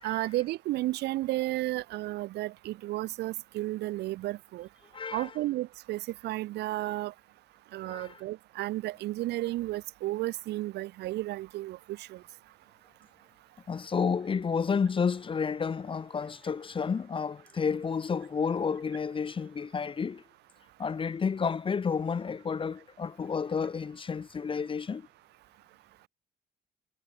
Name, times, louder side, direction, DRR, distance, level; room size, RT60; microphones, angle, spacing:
voice 1, 0.0-4.7 5.1-7.1 7.7-12.2, right 17 dB, 80° right, 2.7 m, -33 dB
voice 2, 4.9-5.3 7.8-8.2 13.7-20.2 20.8-25.1, left 6 dB, 30° left, 1.7 m, -31 dB
cardioid pair, 110°, 17 cm